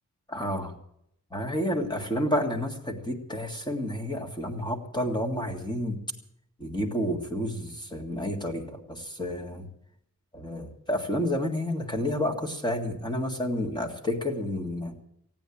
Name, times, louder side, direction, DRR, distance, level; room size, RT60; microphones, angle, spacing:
voice 1, 0.3-0.7 1.3-6.0 6.6-9.7 10.3-14.9, left 1 dB, 15° left, 3 dB, 1.8 m, -30 dB
16.5 x 9.3 x 8.4 m, 0.75 s
wide cardioid pair, 175°, 31 cm